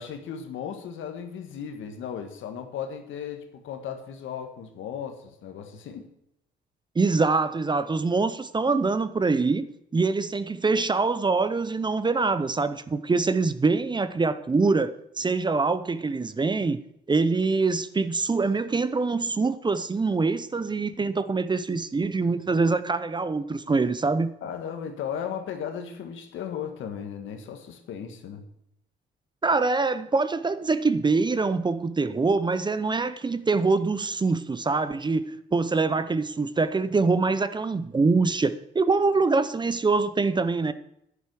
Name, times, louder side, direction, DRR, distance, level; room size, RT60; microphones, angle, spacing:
voice 1, 0.0-6.1 24.4-28.4, left 8 dB, 80° left, 1.6 m, -36 dB
voice 2, 7.0-16.8 17.1-24.3 29.4-40.7, right 4 dB, 25° right, 0.6 m, -24 dB
10.5 x 10.5 x 4.7 m
cardioid pair, 90°, 20 cm